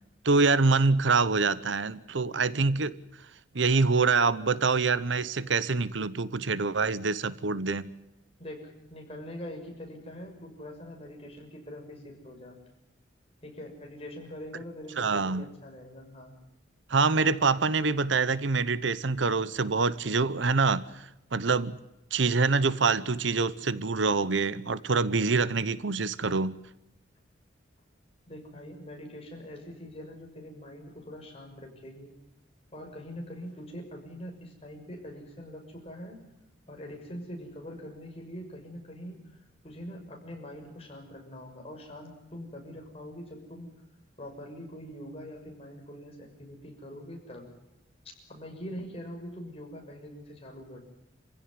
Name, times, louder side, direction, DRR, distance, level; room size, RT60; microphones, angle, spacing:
voice 1, 0.2-3.0 3.5-7.9 15.0-15.4 16.9-21.8 22.1-26.6, right 4 dB, 75° right, 0.9 m, -25 dB
voice 2, 8.4-12.6 13.4-16.3 28.3-32.1 32.7-36.2 36.7-39.2 39.6-43.7 44.2-47.5 48.3-50.8, equal, 30° left, 6.4 m, -43 dB
27.0 x 16.0 x 9.7 m
head